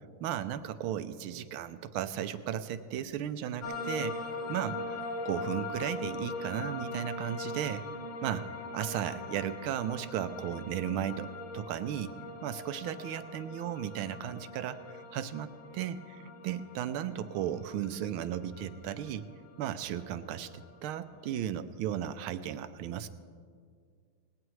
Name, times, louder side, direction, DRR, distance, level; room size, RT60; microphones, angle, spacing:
voice 1, 0.2-4.2 4.5-7.8 8.2-8.5 8.7-12.1 12.4-19.3 19.6-23.1, right 10 dB, 80° right, 12 dB, 1.5 m, -35 dB
sound 1, 3.6-21.3, left 2 dB, 60° left, 0.4 m, -41 dB
19.0 x 17.0 x 3.2 m, 2.1 s
omnidirectional pair, 2.3 m